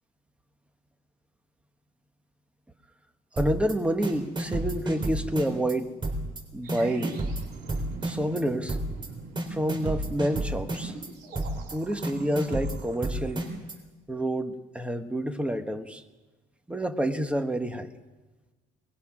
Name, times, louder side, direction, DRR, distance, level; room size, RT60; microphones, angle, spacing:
voice 1, 3.3-5.9 6.5-7.2 8.0-8.8 9.5-10.9 11.7-13.5 14.1-16.0 16.7-17.9, right 1 dB, 5° right, 7 dB, 1.4 m, -28 dB
sound 1, 3.4-3.7 4.0-5.7 6.0-6.4 6.7-8.4 8.7-9.1 9.4-11.1 11.3-11.7 12.0-13.7, right 1 dB, 30° right, 3.8 m, -30 dB
sound 2, 6.6-13.6, right 5 dB, 70° right, 4.2 m, -45 dB
21.5 x 20.0 x 6.1 m, 1.2 s
cardioid pair, 110°, 17 cm